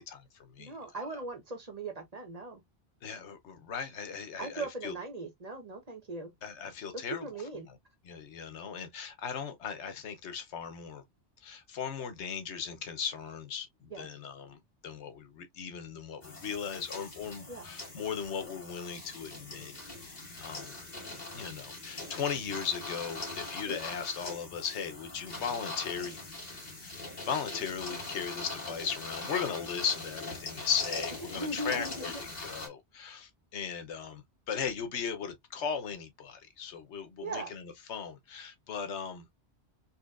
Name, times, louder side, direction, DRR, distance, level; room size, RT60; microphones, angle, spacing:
voice 1, 0.0-0.7 3.0-4.9 6.4-7.2 7.7-7.8 8.0-11.0 11.4-19.7 20.1-20.7 21.3-26.2 26.8-39.3, left 7 dB, 80° left, 1.1 m, -37 dB
voice 2, 0.6-2.6 4.4-6.3 7.2-7.7 13.9-14.1 17.5-17.6 23.7-23.8 31.3-32.1 37.2-37.5, right 2 dB, 35° right, 1.0 m, -39 dB
sound 1, 16.2-32.7, left 2 dB, 40° left, 2.1 m, -42 dB
4.2 x 2.9 x 2.4 m
omnidirectional pair, 1.1 m